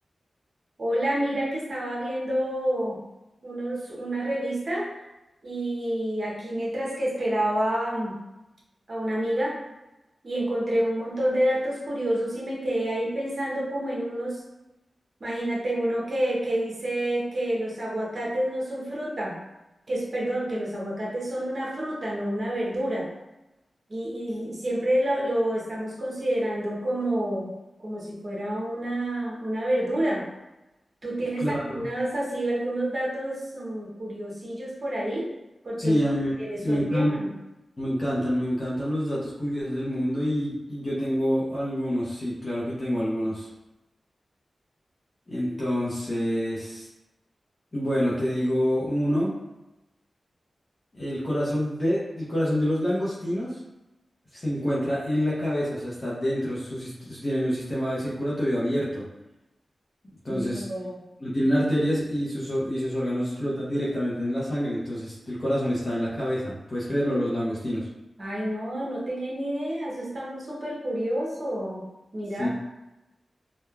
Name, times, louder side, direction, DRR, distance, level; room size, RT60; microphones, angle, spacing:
voice 1, 0.8-3.0 3.4-4.9 5.4-8.1 8.9-9.6 10.2-14.4 15.2-19.4 19.9-23.1 23.9-27.5 27.8-30.2 31.0-35.3 35.6-36.0 36.4-37.3 60.3-61.0 68.2-71.8 72.1-72.5, right 1 dB, 50° right, -4 dB, 0.8 m, -28 dB
voice 2, 31.4-31.9 35.8-36.3 36.6-37.1 37.8-43.5 45.3-46.9 47.7-49.3 50.9-53.6 54.3-59.0 60.2-60.6 61.2-67.9 72.4-72.5, equal, 40° left, -8 dB, 0.6 m, -27 dB
3.1 x 2.2 x 2.3 m, 1.0 s
wide cardioid pair, 85°, 0 cm